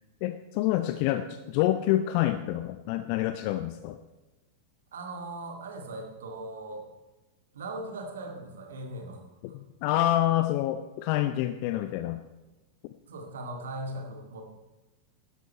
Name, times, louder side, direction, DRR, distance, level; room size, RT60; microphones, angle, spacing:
voice 1, 0.2-4.0 9.4-12.2, left 13 dB, 45° left, 10 dB, 0.5 m, -27 dB
voice 2, 4.9-6.9 7.5-9.2 13.1-14.4, right 2 dB, 65° right, 3 dB, 2.1 m, -39 dB
12.5 x 10.5 x 4.5 m, 1.1 s
figure-of-eight pair, 90°, 0 cm